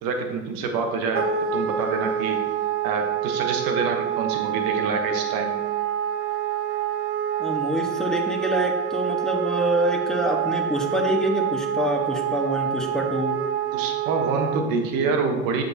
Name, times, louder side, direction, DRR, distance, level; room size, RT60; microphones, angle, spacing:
voice 1, 0.0-2.4 2.8-5.6 13.7-15.6, right 4 dB, 70° right, 4 dB, 1.3 m, -26 dB
Wind instrument woodwind instrument, 1.1-14.6, right 10 dB, 35° right, 0.9 m, -27 dB
voice 2, 7.4-13.4, equal, ahead, 0 dB, 1.4 m, -26 dB
7.7 x 5.8 x 2.9 m, 1.2 s
hypercardioid pair, 65°, 36 cm